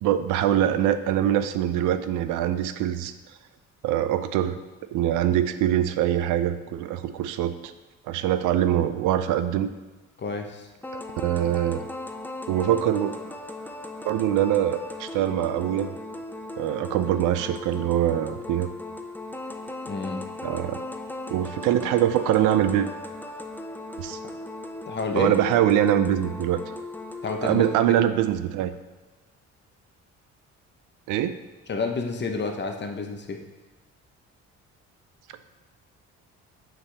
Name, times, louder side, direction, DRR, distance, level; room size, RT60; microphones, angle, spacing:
voice 1, 0.0-3.1 3.8-4.6 4.9-7.7 8.1-9.7 10.9-11.8 12.5-13.1 14.0-15.9 16.6-18.7 20.4-20.8 21.3-22.9 24.0-24.2 25.1-26.6 27.4-28.7 31.1-31.4, right 11 dB, 90° right, 11 dB, 0.5 m, -23 dB
voice 2, 10.2-10.7 19.9-20.2 24.9-25.4 27.2-28.0 31.7-33.4, left 4 dB, 35° left, 3 dB, 0.9 m, -30 dB
sound 1, 10.8-27.8, left 2 dB, 5° left, 0.4 m, -37 dB
5.7 x 4.8 x 3.3 m, 1.2 s
cardioid pair, 90°, 30 cm